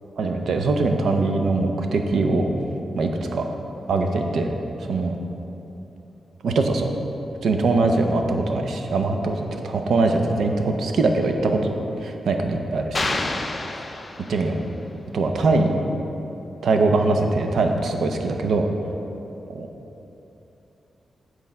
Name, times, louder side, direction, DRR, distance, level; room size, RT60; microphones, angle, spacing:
voice 1, 0.2-2.5 2.9-3.5 3.9-4.5 4.9-5.2 6.4-6.9 7.4-13.2 13.7-13.8 14.3-14.5 15.1-15.8 16.6-18.7 19.5-19.7, right 3 dB, 75° right, 4 dB, 0.6 m, -22 dB
sound 1, 12.9-14.7, left 2 dB, 25° left, 0.4 m, -28 dB
7.8 x 4.7 x 4.2 m, 3.0 s
wide cardioid pair, 135°, 0 cm